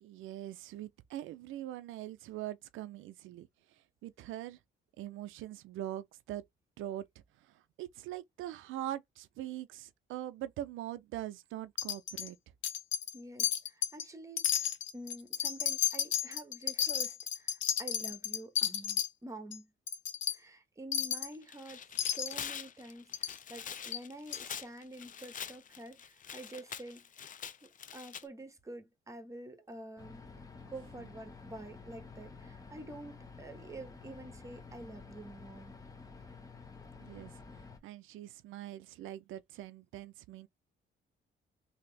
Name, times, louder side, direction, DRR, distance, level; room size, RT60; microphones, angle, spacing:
voice 1, 0.0-3.5 4.0-4.6 5.0-6.4 6.8-7.1 7.4-12.4 37.0-40.5, right 13 dB, 85° right, 0.5 m, -42 dB
Wind chime, 11.8-12.3 12.6-13.1 13.4-14.0 14.4-19.1 19.5-19.6 19.9-20.4 20.9-21.3 22.0-22.4 23.1-23.3 23.9-24.0 24.3-24.4, left 10 dB, 70° left, 0.8 m, -33 dB
voice 2, 13.1-19.7 20.3-27.0 27.6-30.2 30.6-35.8, right 2 dB, 15° right, 1.1 m, -48 dB
Tearing, 21.3-28.2, left 8 dB, 40° left, 0.6 m, -45 dB
sound 1, 30.0-37.8, left 4 dB, 15° left, 1.1 m, -51 dB
3.4 x 2.8 x 3.2 m
cardioid pair, 90°, 20 cm